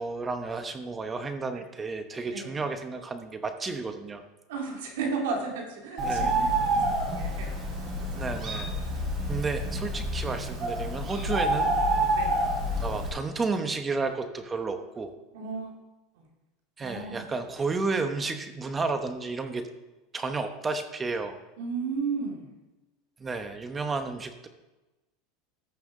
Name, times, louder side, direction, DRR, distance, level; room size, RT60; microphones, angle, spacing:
voice 1, 0.0-4.2 6.0-6.4 8.2-8.7 9.3-11.7 12.8-15.1 16.8-19.6 20.1-21.4 23.2-24.5, right 4 dB, 20° right, 8 dB, 0.9 m, -32 dB
voice 2, 4.5-8.4 9.1-9.3 11.4-11.5 12.1-12.3 15.3-15.7 16.2-16.3 16.8-17.2 21.6-22.5, right 4 dB, 85° right, 0 dB, 2.2 m, -34 dB
Bird, 6.0-13.1, right 1 dB, 35° right, 3.4 m, -28 dB
14.5 x 5.6 x 3.7 m, 1.0 s
supercardioid pair, 125°, 0 cm